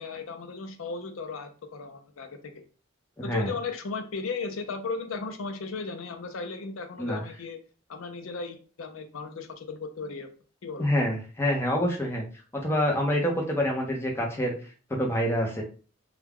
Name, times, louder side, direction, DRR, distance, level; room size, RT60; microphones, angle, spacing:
voice 1, 0.0-2.6 3.2-7.6 7.9-10.3 10.6-10.9, left 4 dB, 85° left, 7 dB, 0.5 m, -36 dB
voice 2, 3.2-3.5 7.0-7.2 10.8-12.2 12.6-14.5 15.0-15.6, equal, 10° left, -1 dB, 0.6 m, -26 dB
2.3 x 2.2 x 3.4 m, 0.38 s
head